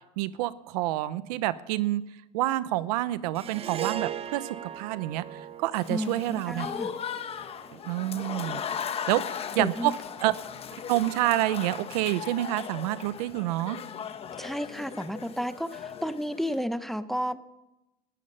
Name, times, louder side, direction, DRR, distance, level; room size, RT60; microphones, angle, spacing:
voice 1, 0.2-2.0 2.3-6.7 7.8-8.6 9.1-9.2 9.6-9.9 10.2-10.3 10.9-13.8, right 16 dB, 80° right, 16 dB, 0.8 m, -28 dB
Harp, 3.3-7.8, right 9 dB, 30° right, 0.9 m, -38 dB
Applause / Crowd, 5.7-16.6, left 7 dB, 30° left, 1.1 m, -38 dB
voice 2, 5.9-6.9 9.6-9.9 14.4-17.5, equal, ahead, 12 dB, 0.8 m, -32 dB
19.0 x 13.5 x 5.6 m, 0.96 s
supercardioid pair, 120°, 20 cm